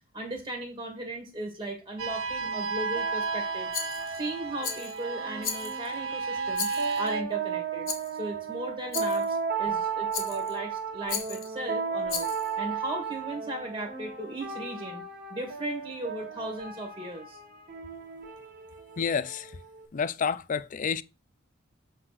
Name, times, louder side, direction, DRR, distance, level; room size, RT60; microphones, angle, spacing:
voice 1, 0.1-3.7 4.1-12.3 12.6-15.0 15.3-17.4, right 1 dB, 20° right, 1.8 m, -37 dB
sound 1, 2.0-7.2, right 4 dB, 85° right, 0.9 m, -33 dB
sound 2, 2.4-19.9, right 5 dB, 45° right, 1.5 m, -35 dB
Rattle, 3.7-4.2 4.6-5.0 5.4-5.9 6.5-7.1 7.9-8.2 8.9-9.3 10.1-10.6 11.1-11.5 12.1-12.5, left 7 dB, 80° left, 1.5 m, -35 dB
voice 2, 19.0-19.5 19.9-21.0, left 6 dB, 40° left, 0.4 m, -29 dB
7.8 x 3.2 x 5.7 m
head